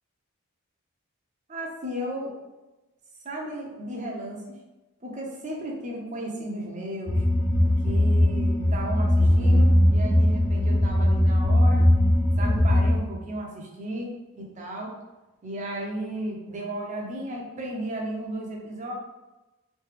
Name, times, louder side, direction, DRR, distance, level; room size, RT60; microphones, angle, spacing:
voice 1, 1.5-2.3 3.2-4.6 5.0-7.2 7.8-11.9 12.4-14.9 15.4-18.9, right 1 dB, 35° right, -1 dB, 0.6 m, -34 dB
sound 1, 7.1-13.0, left 1 dB, 35° left, 0.6 m, -20 dB
3.2 x 2.8 x 3.3 m, 1.1 s
head